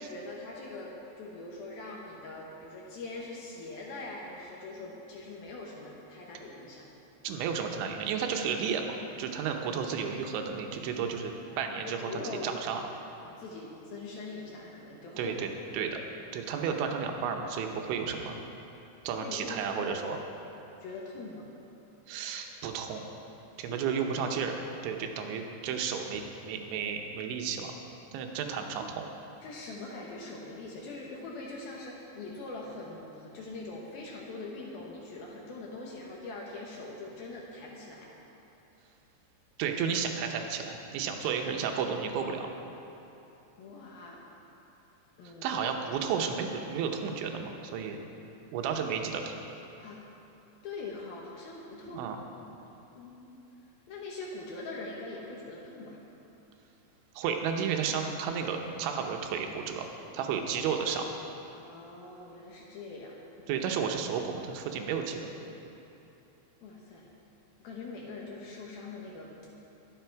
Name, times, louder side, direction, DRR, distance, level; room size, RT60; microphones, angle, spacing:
voice 1, 0.0-6.9 11.8-12.5 13.2-15.6 19.2-20.1 20.8-21.5 23.6-23.9 29.4-38.1 42.7-42.8 43.6-44.2 45.2-45.5 49.8-50.0 50.6-52.0 52.9-53.3 53.9-56.0 61.5-63.2 66.6-67.1 67.6-69.3, left 3 dB, 70° left, -2 dB, 2.5 m, -42 dB
voice 2, 7.2-12.1 12.4-12.8 15.2-15.5 15.7-16.0 16.3-18.4 19.0-20.2 22.1-23.0 23.6-24.6 24.8-27.7 28.1-29.1 39.6-42.5 45.2-48.0 48.5-49.3 51.9-52.2 57.2-59.9 60.1-61.1 63.5-65.3, right 6 dB, 80° right, 4 dB, 3.2 m, -32 dB
22.0 x 7.7 x 4.6 m, 3.0 s
omnidirectional pair, 5.4 m